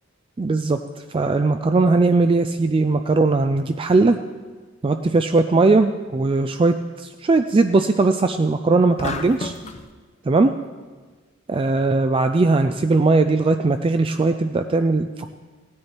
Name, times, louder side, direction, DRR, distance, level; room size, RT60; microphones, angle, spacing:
voice 1, 0.4-0.8 1.1-4.2 4.8-9.5 10.3-10.5 11.5-15.3, right 3 dB, 25° right, 7 dB, 0.3 m, -19 dB
sound 1, 9.0-9.8, left 2 dB, 35° left, 0.7 m, -30 dB
16.0 x 9.6 x 4.4 m, 1.4 s
head